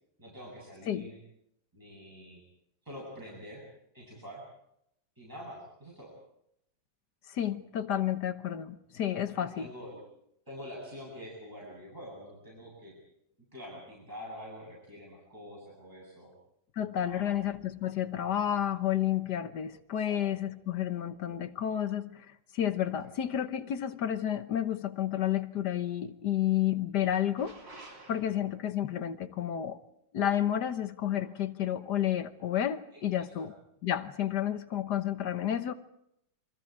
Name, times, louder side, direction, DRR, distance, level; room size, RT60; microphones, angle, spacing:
voice 1, 0.2-1.2 1.7-2.4 2.8-3.6 3.9-4.4 5.2-6.1 9.4-10.0 10.5-13.0 13.5-16.3 17.0-17.4 19.9-20.4 23.0-23.1 28.2-28.4, equal, 10° right, -5 dB, 8.0 m, -46 dB
voice 2, 7.3-9.7 16.8-22.3 22.5-27.5 28.1-29.8 30.1-33.5 33.8-35.7, left 10 dB, 65° left, 10 dB, 1.6 m, -31 dB
sound 1, 27.4-28.7 31.1-31.5, right 2 dB, 75° right, 3.8 m, -51 dB
29.5 x 24.0 x 4.8 m, 0.76 s
omnidirectional pair, 2.0 m